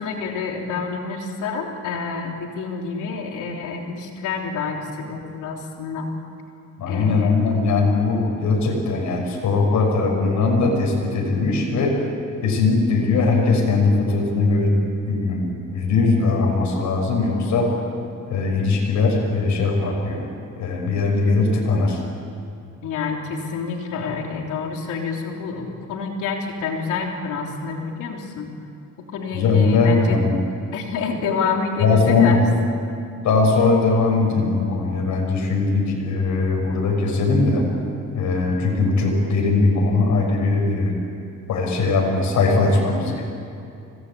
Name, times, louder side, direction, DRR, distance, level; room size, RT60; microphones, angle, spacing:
voice 1, 0.0-6.1 6.9-7.3 22.8-28.5 29.1-30.2 30.7-32.4, left 5 dB, 90° left, 1 dB, 3.4 m, -28 dB
voice 2, 6.8-12.0 12.4-14.8 15.1-17.7 18.3-20.3 20.6-22.0 29.3-30.4 31.8-32.4 33.2-37.6 38.1-41.0 41.5-43.2, left 3 dB, 70° left, 0 dB, 6.1 m, -20 dB
25.5 x 18.5 x 8.6 m, 2.5 s
cardioid pair, 90°, 30 cm